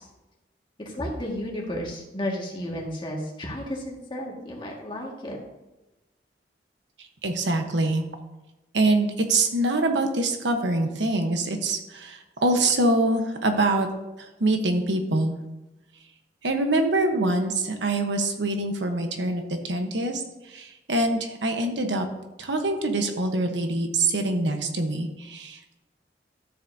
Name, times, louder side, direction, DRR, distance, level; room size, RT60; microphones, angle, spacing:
voice 1, 0.9-5.4, left 1 dB, 25° left, -2 dB, 1.9 m, -33 dB
voice 2, 7.2-8.0 8.7-13.9 14.2-15.4 16.4-22.0 22.4-25.8, right 2 dB, 75° right, 5 dB, 1.1 m, -24 dB
13.0 x 7.2 x 2.8 m, 1.0 s
head